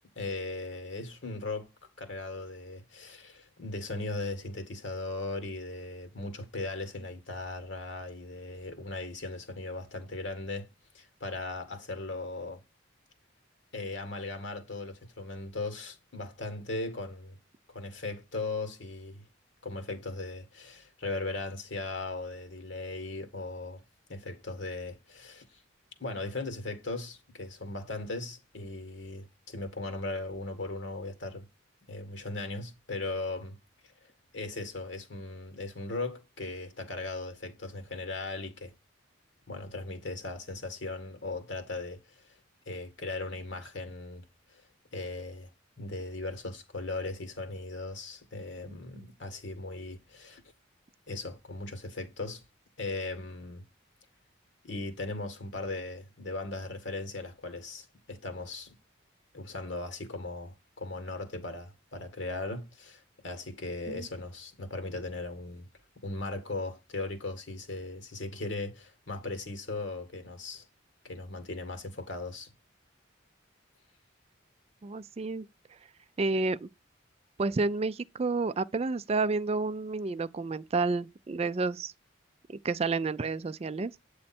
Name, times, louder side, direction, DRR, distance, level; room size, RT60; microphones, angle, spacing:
voice 1, 0.2-1.7 2.0-10.7 10.9-12.6 13.7-17.4 17.7-19.2 19.6-23.8 24.1-25.6 26.0-31.5 31.9-33.6 34.3-38.7 39.5-42.2 42.7-44.6 44.9-45.5 45.8-50.4 51.1-52.4 52.8-53.6 54.6-58.7 59.3-65.7 66.0-70.7 71.0-72.5, left 2 dB, 65° left, 1.8 m, -38 dB
voice 2, 74.8-75.5 76.2-76.7 77.4-81.9 82.5-83.9, right 3 dB, 30° right, 0.4 m, -30 dB
8.7 x 3.1 x 4.3 m
head